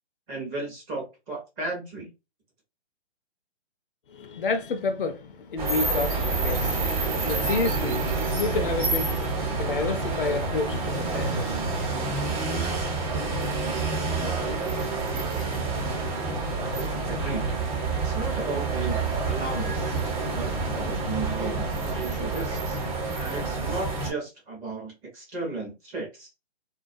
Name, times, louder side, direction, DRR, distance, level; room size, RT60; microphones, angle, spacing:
voice 1, 0.3-2.1 17.1-17.5 18.0-19.0 19.2-22.8 23.2-26.3, right 3 dB, 15° right, 0.6 m, -35 dB
voice 2, 4.1-12.4, left 4 dB, 55° left, 0.5 m, -30 dB
sound 1, 5.6-24.1, right 3 dB, 35° right, 1.0 m, -28 dB
2.3 x 2.2 x 2.5 m
hypercardioid pair, 145°, 33 cm